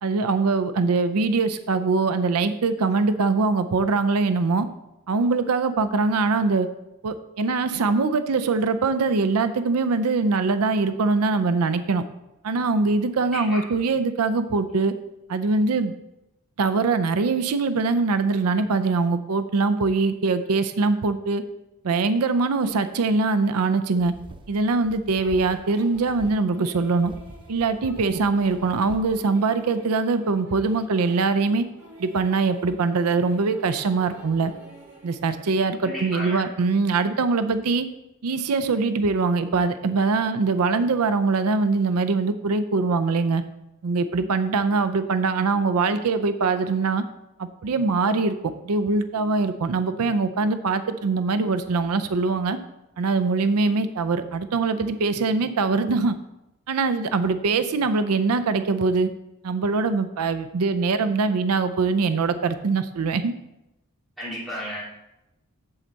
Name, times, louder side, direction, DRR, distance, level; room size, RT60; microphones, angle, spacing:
voice 1, 0.0-4.7 5.1-6.7 7.0-12.0 12.4-14.9 15.3-15.9 16.6-21.4 21.8-24.1 24.5-27.1 27.5-31.6 32.0-34.5 35.0-37.9 38.2-43.4 43.8-47.0 47.4-52.6 53.0-56.2 56.7-59.1 59.4-63.3, right 4 dB, 90° right, 10 dB, 0.5 m, -23 dB
voice 2, 13.2-13.6 35.8-36.4 64.2-64.8, equal, ahead, -9 dB, 3.6 m, -33 dB
sound 1, 24.0-25.7 25.9-26.4 26.9-29.2, right 1 dB, 25° right, 0.5 m, -44 dB
sound 2, 25.2-35.7, equal, 55° right, 2.6 m, -48 dB
7.8 x 7.4 x 4.0 m, 0.90 s
head